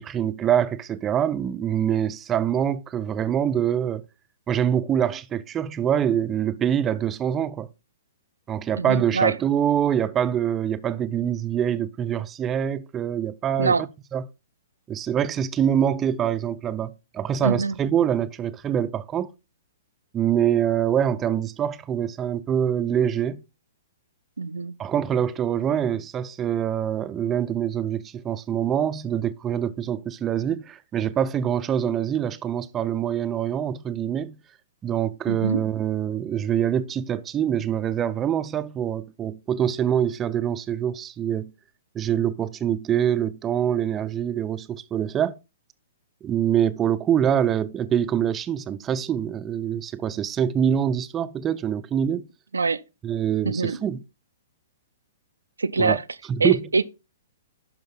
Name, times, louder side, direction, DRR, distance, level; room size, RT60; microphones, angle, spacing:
voice 1, 0.0-4.0 4.5-7.7 8.5-14.2 14.9-19.3 20.1-23.4 24.8-34.4 34.8-41.5 41.9-45.4 46.2-52.3 53.0-54.0 55.8-56.0 56.3-56.6, right 9 dB, 20° right, 0.5 m, -25 dB
voice 2, 8.8-9.4 13.6-13.9 17.4-17.7 24.4-24.8 35.3-35.6 52.5-52.8 53.4-53.8 55.6-56.0 56.4-56.8, right 4 dB, 85° right, 0.5 m, -23 dB
11.5 x 5.2 x 3.7 m
hypercardioid pair, 120°, 0 cm